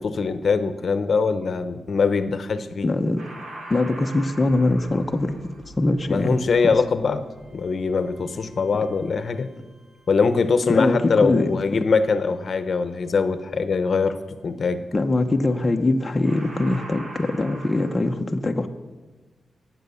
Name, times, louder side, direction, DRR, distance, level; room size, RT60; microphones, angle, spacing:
voice 1, 0.0-2.9 6.1-7.3 7.5-9.5 10.1-14.2 14.4-14.8, left 4 dB, 50° left, 11 dB, 0.9 m, -22 dB
voice 2, 2.8-3.2 3.7-5.4 5.8-6.4 10.7-11.5 14.9-18.7, left 2 dB, 20° left, 3 dB, 0.8 m, -22 dB
sound 1, 3.2-10.3 15.6-15.9 16.2-18.0, right 1 dB, 55° right, 2.7 m, -43 dB
19.0 x 7.7 x 7.0 m, 1.2 s
wide cardioid pair, 120°, 0 cm